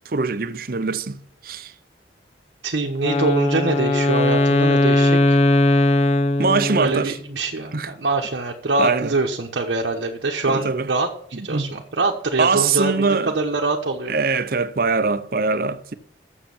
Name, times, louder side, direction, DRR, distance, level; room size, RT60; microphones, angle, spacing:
voice 1, 0.1-1.7 6.4-7.2 7.7-7.9 8.8-9.2 10.4-10.9 11.3-11.7 12.4-13.3 14.1-15.9, right 4 dB, 50° right, 0.6 m, -22 dB
voice 2, 2.6-5.4 6.8-14.1, right 3 dB, 65° right, 1.0 m, -24 dB
Wind instrument woodwind instrument, 3.0-7.2, left 2 dB, 35° left, 0.7 m, -19 dB
7.3 x 7.0 x 7.1 m
head